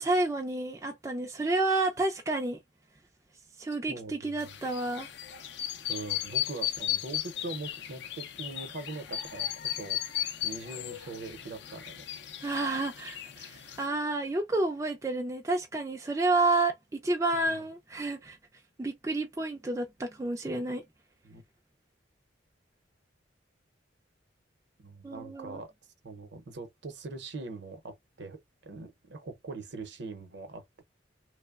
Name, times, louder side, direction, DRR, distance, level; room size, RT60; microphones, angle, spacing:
voice 1, 0.0-2.6 3.6-5.1 12.4-18.4 18.8-20.8 25.0-25.6, right 2 dB, 15° right, 0.3 m, -30 dB
voice 2, 3.9-4.4 5.9-12.0 17.3-17.7 21.2-21.4 24.8-25.7 26.0-30.8, right 3 dB, 60° right, 0.6 m, -42 dB
sound 1, 4.4-13.8, left 12 dB, 60° left, 0.4 m, -36 dB
3.0 x 2.0 x 2.3 m
head